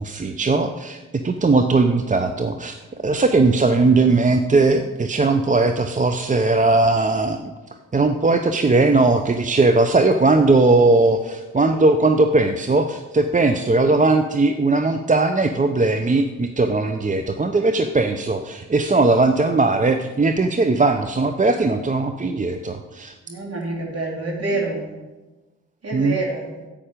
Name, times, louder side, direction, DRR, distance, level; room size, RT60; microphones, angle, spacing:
voice 1, 0.0-2.7 3.0-7.5 7.9-23.1 25.9-26.2, right 3 dB, 25° right, 7 dB, 0.7 m, -19 dB
voice 2, 23.3-24.8 25.8-26.5, right 2 dB, 50° right, -2 dB, 3.9 m, -27 dB
9.9 x 8.7 x 5.1 m, 1.2 s
supercardioid pair, 50°, 32 cm